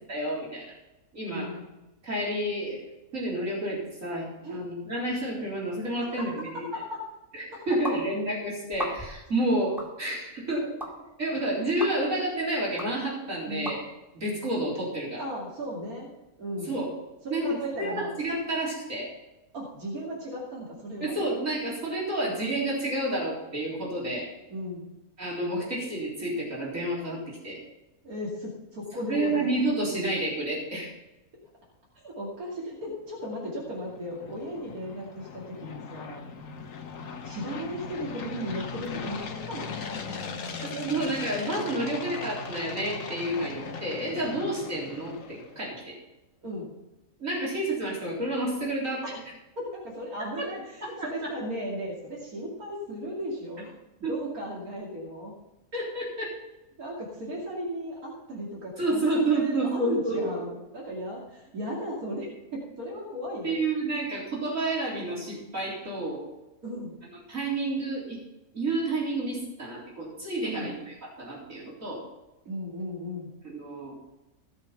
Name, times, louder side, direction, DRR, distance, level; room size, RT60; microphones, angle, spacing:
voice 1, 0.1-0.7 1.1-1.5 2.0-2.8 3.1-6.6 7.3-10.7 11.2-13.8 14.1-15.2 16.6-17.0 17.3-19.1 21.0-24.3 25.2-27.6 29.1-30.9 40.6-45.9 47.2-49.0 51.0-51.3 54.0-54.1 55.7-56.3 58.8-60.4 63.4-66.3 67.3-68.2 68.5-72.1 73.4-73.9, right 1 dB, 65° right, -6 dB, 4.4 m, -30 dB
voice 2, 1.3-1.7 4.4-4.6 6.0-6.3 6.7-7.0 7.5-7.6 13.5-13.7 15.2-16.1 16.4-16.8 17.2-18.2 19.5-21.1 24.5-24.9 28.0-29.6 31.9-36.2 37.2-39.7 46.4-46.7 49.0-49.2 49.6-53.7 54.1-55.3 56.8-63.6 66.6-67.0 70.4-70.8 72.4-73.3, equal, 90° right, -5 dB, 3.0 m, -36 dB
sound 1, 7.8-8.0 8.7-9.2 9.8-9.9 10.8-10.9 11.8-11.9 12.8-12.9 13.7-13.8, equal, ahead, 2.1 m, -34 dB
sound 2, 33.3-45.6, left 5 dB, 65° left, 1.4 m, -39 dB
17.0 x 6.7 x 5.8 m, 0.99 s
omnidirectional pair, 1.5 m